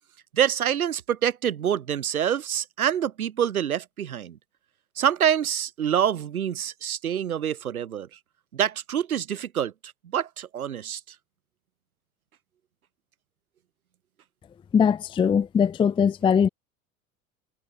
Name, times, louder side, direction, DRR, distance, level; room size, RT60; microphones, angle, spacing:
voice 1, 0.3-4.4 5.0-8.1 8.5-9.7 10.1-11.0, right 9 dB, 85° right, 0.7 m, -26 dB
voice 2, 14.7-16.5, left 7 dB, 15° left, 0.5 m, -21 dB
figure-of-eight pair, 75°, 42 cm